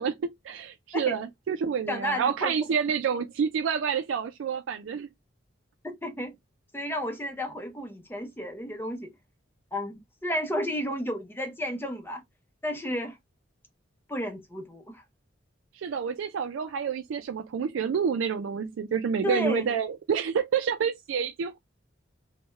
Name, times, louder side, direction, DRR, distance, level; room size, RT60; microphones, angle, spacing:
voice 1, 0.0-5.1 15.7-21.6, right 6 dB, 80° right, 0.3 m, -28 dB
voice 2, 1.9-2.5 5.8-6.4 6.7-9.1 9.7-12.2 12.6-13.2 14.1-15.0 19.2-19.6, equal, 10° left, 0.5 m, -32 dB
3.3 x 2.1 x 3.0 m
head